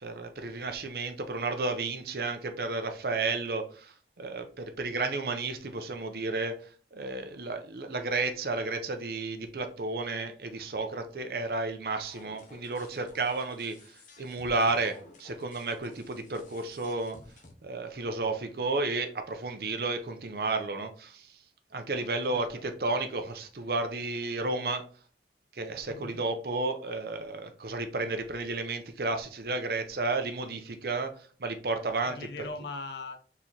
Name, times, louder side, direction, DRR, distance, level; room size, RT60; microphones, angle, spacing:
voice 1, 0.0-17.2 17.6-21.4 21.7-24.9 25.5-32.2, right 3 dB, 60° right, 0.6 m, -32 dB
sound 1, 12.0-17.5, left 2 dB, 45° left, 0.8 m, -55 dB
voice 2, 22.3-22.6 25.9-26.2 32.1-33.2, left 3 dB, 80° left, 0.6 m, -40 dB
4.6 x 4.0 x 2.8 m
head